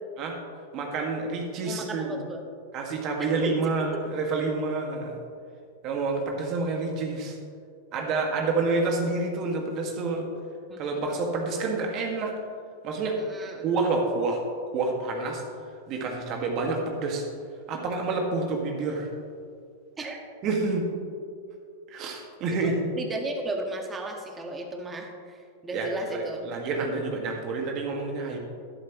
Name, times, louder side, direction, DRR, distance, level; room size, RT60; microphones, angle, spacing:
voice 1, 0.7-2.2 2.7-5.2 5.8-7.4 7.9-10.3 10.8-12.3 12.8-13.2 13.6-14.4 14.7-15.4 15.9-17.3 17.7-19.1 20.4-20.9 21.9-22.8 25.7-28.4, right 3 dB, 45° right, 1 dB, 1.9 m, -28 dB
voice 2, 1.6-2.4 3.2-3.5 3.9-4.0 10.7-11.0 13.2-13.7 20.0-20.2 22.6-26.5, right 2 dB, 20° right, 3 dB, 1.6 m, -35 dB
12.0 x 11.0 x 3.1 m, 2.4 s
hypercardioid pair, 100°, 0 cm